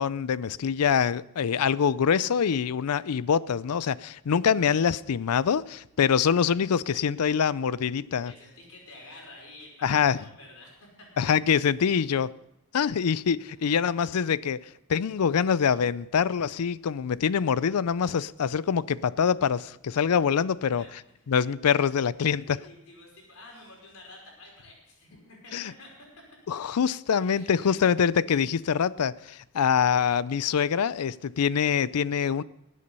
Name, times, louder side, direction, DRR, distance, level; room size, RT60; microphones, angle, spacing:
voice 1, 0.0-8.3 9.8-10.2 11.2-12.3 12.7-14.6 14.9-20.8 21.3-22.6 25.5-25.7 26.5-32.4, left 7 dB, 85° left, 0.4 m, -25 dB
voice 2, 8.2-11.3 13.6-13.9 20.8-20.9 22.4-25.9 27.3-27.5, left 2 dB, 70° left, 5.1 m, -50 dB
20.0 x 8.5 x 5.4 m
head